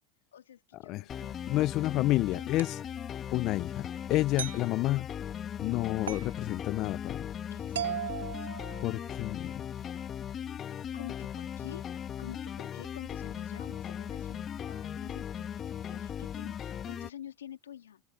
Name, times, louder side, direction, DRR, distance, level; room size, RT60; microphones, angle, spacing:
voice 1, 0.3-1.9 2.2-2.5 7.5-8.5 10.9-11.9 12.2-18.0, left 10 dB, 90° left, 2.4 m, -49 dB
sound 1, 1.1-17.1, left 9 dB, 35° left, 1.7 m, -38 dB
voice 2, 1.5-2.8 3.3-5.1 5.6-7.2 8.8-9.6, left 17 dB, 50° left, 0.6 m, -29 dB
sound 2, 2.6-2.8 4.4-4.7 6.1-6.4 7.8-9.2, right 10 dB, 90° right, 2.3 m, -37 dB
hypercardioid pair, 95°, 0 cm